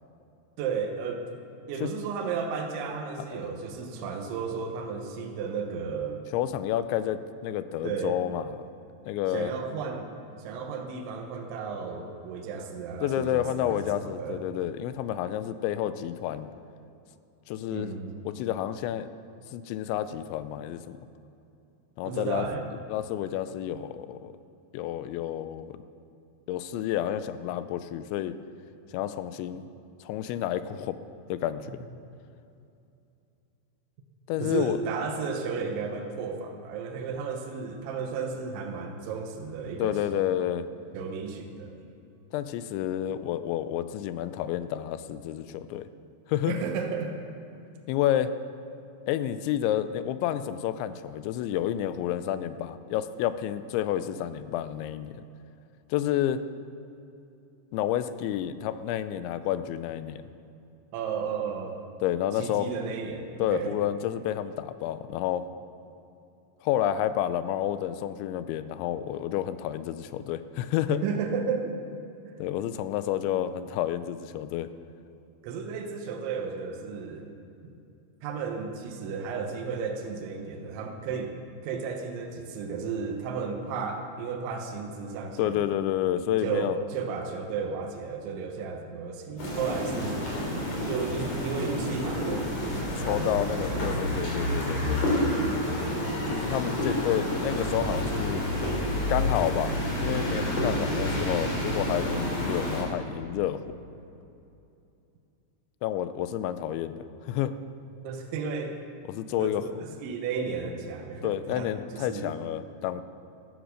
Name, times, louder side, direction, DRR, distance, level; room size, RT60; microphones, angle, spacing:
voice 1, 0.6-1.3 1.7-6.3 7.8-8.2 9.3-10.1 10.4-14.4 17.7-18.2 22.1-22.7 34.4-40.0 40.9-41.7 46.5-47.2 60.9-61.8 62.3-63.8 70.9-71.7 72.2-72.4 75.4-77.3 77.6-77.7 78.2-81.3 81.6-85.7 86.4-90.2 90.9-94.2 100.7-101.2 108.0-108.8 109.4-109.6 110.0-112.3, right 5 dB, 80° right, 3 dB, 3.5 m, -33 dB
voice 2, 6.3-8.5 9.1-9.5 13.0-16.5 17.5-17.9 18.3-19.1 19.5-21.0 22.0-22.5 22.9-24.3 24.7-25.8 26.5-28.4 28.9-29.6 30.0-31.0 31.3-31.8 34.3-34.8 39.8-40.7 42.3-45.8 46.3-46.6 47.9-48.3 49.1-55.1 55.9-56.4 57.7-60.2 62.0-62.7 63.4-65.4 66.6-71.0 72.4-74.7 85.4-86.8 93.0-95.0 96.3-98.4 99.1-103.6 105.8-107.5 109.1-109.6 111.2-113.0, left 11 dB, 85° left, 12 dB, 2.9 m, -30 dB
sound 1, 89.4-102.8, left 1 dB, 40° left, 4.6 m, -29 dB
15.0 x 13.5 x 6.4 m, 2.7 s
omnidirectional pair, 5.3 m